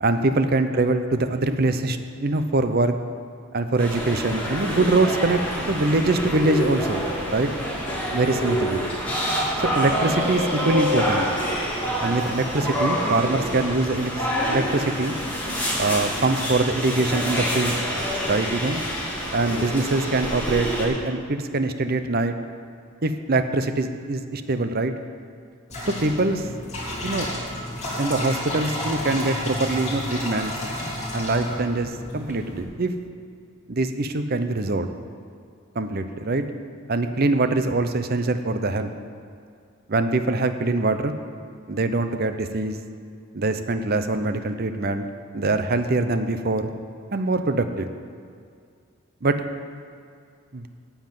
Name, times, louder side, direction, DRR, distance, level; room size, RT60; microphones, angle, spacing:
voice 1, 0.0-3.0 3.5-7.5 8.1-8.8 9.7-11.3 12.0-14.1 14.5-15.2 15.8-17.8 18.2-18.8 19.3-22.4 23.0-24.9 26.0-26.5 27.0-27.3 28.0-30.5 31.1-32.9 33.7-34.9 35.8-36.4 36.9-38.9 39.9-41.1 41.7-42.8 43.3-45.1 45.3-46.7 47.1-47.9 49.2-49.4 50.5-50.7, right 2 dB, 45° right, 9 dB, 0.7 m, -23 dB
sound 1, 3.8-20.9, equal, 10° left, 2.8 m, -27 dB
sound 2, 25.7-32.6, left 1 dB, 30° left, 3.0 m, -31 dB
9.4 x 7.2 x 9.1 m, 2.2 s
head